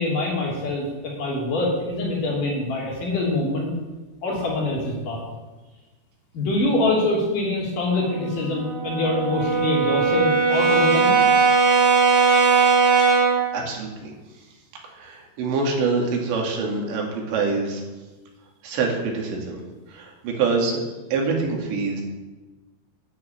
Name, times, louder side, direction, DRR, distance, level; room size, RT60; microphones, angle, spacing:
voice 1, 0.0-3.7 4.2-5.2 6.3-11.2, left 2 dB, 50° left, -3 dB, 4.4 m, -24 dB
Brass instrument, 8.0-13.5, right 5 dB, 65° right, 5.3 m, -19 dB
voice 2, 13.5-14.1 14.9-17.8 18.6-19.6 19.9-20.8 21.1-22.0, right 4 dB, 85° right, 0 dB, 4.6 m, -25 dB
10.0 x 9.4 x 8.8 m, 1.2 s
omnidirectional pair, 5.0 m